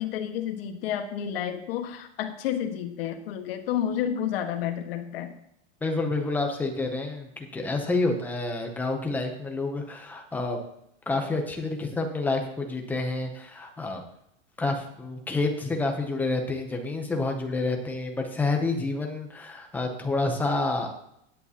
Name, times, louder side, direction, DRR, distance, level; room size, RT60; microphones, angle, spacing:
voice 1, 0.0-5.3, left 9 dB, 50° left, 5 dB, 1.5 m, -30 dB
voice 2, 5.8-10.6 11.1-14.0 14.6-20.9, left 3 dB, 5° left, 3 dB, 0.6 m, -28 dB
16.0 x 9.8 x 2.8 m, 0.76 s
supercardioid pair, 175°, 37 cm